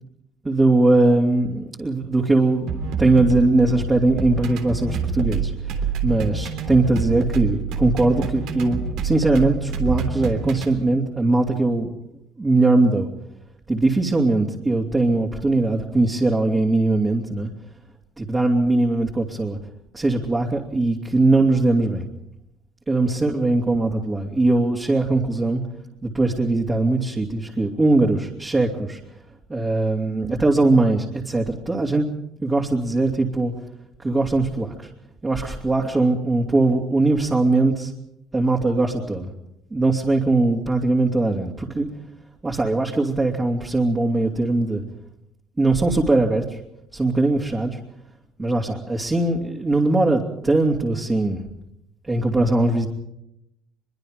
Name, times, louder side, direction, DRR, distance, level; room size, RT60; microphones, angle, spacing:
voice 1, 0.4-11.9 12.4-13.1 13.7-17.5 18.2-19.6 19.9-22.0 22.9-25.6 26.0-29.0 29.5-32.1 32.4-33.5 34.0-34.9 35.2-37.9 38.3-39.3 39.7-41.9 42.4-44.8 45.6-46.6 46.9-47.8 48.4-51.4 52.1-52.9, right 2 dB, 20° right, -2 dB, 3.1 m, -20 dB
sound 1, 2.7-10.7, right 5 dB, 75° right, 3.3 m, -27 dB
23.5 x 23.0 x 5.2 m, 0.81 s
cardioid pair, 105°, 0 cm